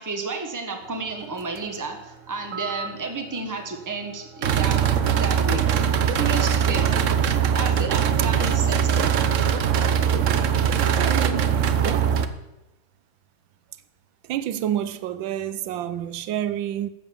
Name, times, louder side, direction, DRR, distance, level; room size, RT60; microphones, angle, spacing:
voice 1, 0.0-4.8 5.1-5.7 6.2-6.9 7.5-9.1, right 4 dB, 10° right, 1.3 m, -31 dB
sound 1, 2.5-2.9 4.4-12.3, right 8 dB, 60° right, 0.8 m, -21 dB
voice 2, 11.0-11.6 11.8-12.1 14.3-16.9, right 11 dB, 85° right, 1.5 m, -28 dB
13.5 x 7.6 x 7.2 m
omnidirectional pair, 2.1 m